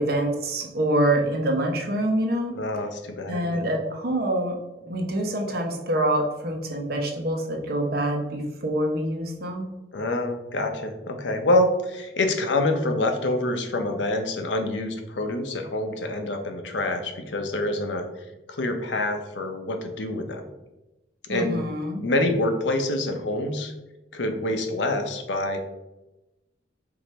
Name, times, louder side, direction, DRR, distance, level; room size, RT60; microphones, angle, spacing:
voice 1, 0.0-2.5 3.3-4.6 4.8-9.7 21.3-22.0, right 1 dB, 55° right, 2 dB, 0.8 m, -26 dB
voice 2, 2.5-3.7 9.9-18.1 18.5-20.5 21.2-21.6 22.0-23.7 24.1-25.6, left 1 dB, 85° left, 5 dB, 0.7 m, -26 dB
4.8 x 2.6 x 4.2 m, 0.99 s
head